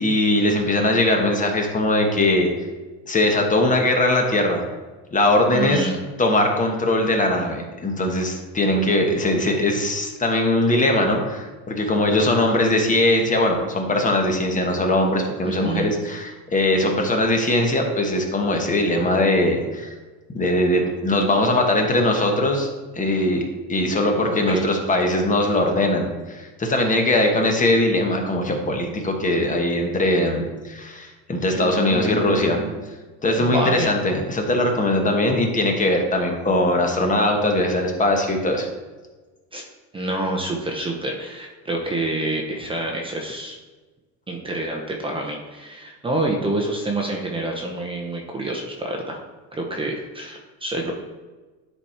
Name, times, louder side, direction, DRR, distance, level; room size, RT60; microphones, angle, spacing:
voice 1, 0.0-2.5 3.0-4.6 5.1-5.9 6.2-19.9 20.3-22.7 22.9-23.4 23.7-32.6 33.2-38.7, left 1 dB, 20° left, 3 dB, 1.2 m, -20 dB
voice 2, 5.5-6.0 15.4-15.9 24.2-24.7 25.0-25.2 31.5-32.7 33.4-33.9 39.5-39.6 39.9-43.6 44.3-49.2 49.5-50.9, right 2 dB, 15° right, 0 dB, 0.8 m, -27 dB
10.5 x 4.2 x 4.4 m, 1.3 s
cardioid pair, 135°, 36 cm